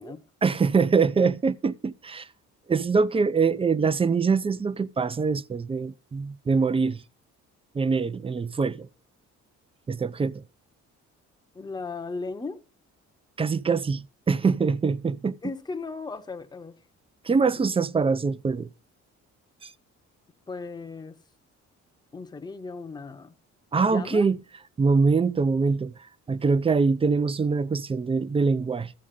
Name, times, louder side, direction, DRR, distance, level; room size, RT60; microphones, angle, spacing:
voice 1, 0.4-2.3 2.7-7.0 7.7-8.9 9.9-10.4 13.4-15.4 17.2-18.7 19.6-19.7 23.7-24.4 24.8-25.9 26.3-28.9, right 4 dB, 20° right, 0.4 m, -24 dB
voice 2, 11.5-12.6 15.4-16.8 17.4-17.5 20.5-21.1 22.1-23.3 23.9-24.2, left 4 dB, 15° left, 0.8 m, -36 dB
12.5 x 7.3 x 3.7 m
cardioid pair, 90°, 30 cm